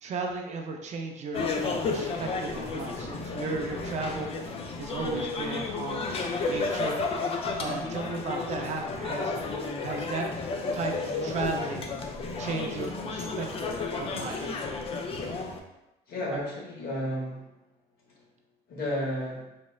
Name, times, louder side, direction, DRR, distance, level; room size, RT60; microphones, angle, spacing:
voice 1, 0.0-1.4 1.9-4.3 4.8-7.0 7.6-9.4 9.8-10.3 10.7-11.8 12.4-14.5 16.3-16.4, right 3 dB, 45° right, 2 dB, 0.4 m, -35 dB
sound 1, 1.3-15.6, left 3 dB, 35° left, 0.4 m, -32 dB
voice 2, 16.1-17.4 18.7-19.5, left 1 dB, 65° left, -3 dB, 1.0 m, -32 dB
4.0 x 2.0 x 2.3 m, 0.95 s
cardioid pair, 110°, 17 cm